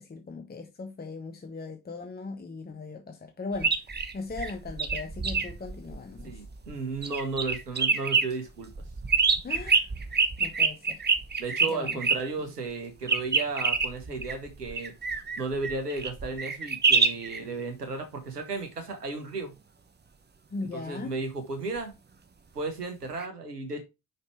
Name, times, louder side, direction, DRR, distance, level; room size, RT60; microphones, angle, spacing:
voice 1, 0.0-3.7 4.1-6.3 9.4-9.8 10.4-11.0 11.7-12.0 20.5-21.1, left 3 dB, 20° left, 1.2 m, -38 dB
sound 1, 3.6-6.7 7.0-8.3 8.7-12.2 13.1-17.4 23.2-23.3, right 4 dB, 20° right, 1.1 m, -26 dB
voice 2, 6.2-8.7 11.4-14.9 15.3-19.5 20.7-21.9 22.5-23.8, right 3 dB, 85° right, 1.3 m, -34 dB
5.8 x 5.3 x 4.6 m
figure-of-eight pair, 50°, 46 cm